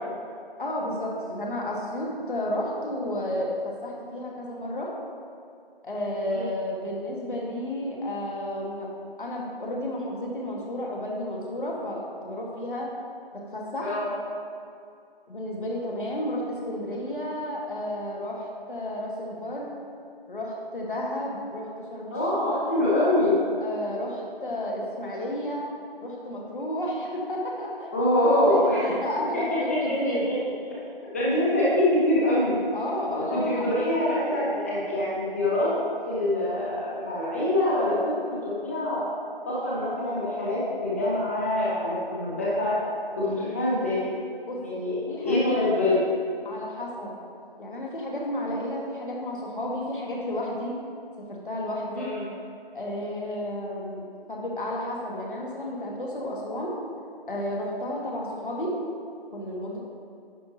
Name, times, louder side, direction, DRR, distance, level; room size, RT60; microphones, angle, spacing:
voice 1, 0.6-3.6 3.8-4.9 5.8-8.9 9.2-12.9 13.3-13.9 15.3-19.7 20.3-22.7 23.6-25.7 26.0-30.3 31.3-31.4 32.7-33.9 34.2-34.4 44.5-45.6 46.4-47.2 47.6-50.7 51.2-52.1 52.7-56.8 57.3-58.7 59.3-59.8, left 1 dB, 60° left, -2 dB, 1.6 m, -32 dB
voice 2, 22.1-23.3 27.9-28.8 29.3-30.1 31.1-32.6 33.1-35.7 36.1-39.0 39.5-42.8 43.2-44.0 44.6-46.0 51.9-52.3, left 1 dB, 15° left, -8 dB, 1.0 m, -25 dB
10.0 x 5.8 x 2.8 m, 2.4 s
figure-of-eight pair, 160°, 30 cm